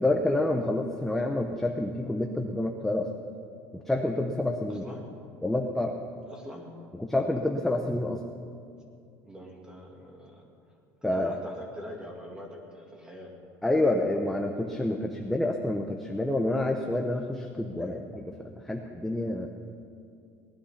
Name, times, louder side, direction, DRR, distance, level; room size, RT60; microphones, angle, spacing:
voice 1, 0.0-3.1 3.7-4.8 5.4-6.0 7.0-8.2 11.0-11.4 13.6-19.5, left 1 dB, 5° left, 2 dB, 0.7 m, -28 dB
voice 2, 4.7-5.1 6.3-6.7 9.2-10.5 11.0-13.3 17.8-17.9, equal, 10° right, 0 dB, 2.3 m, -44 dB
19.0 x 11.5 x 5.7 m, 2.4 s
cardioid pair, 160°, 6 cm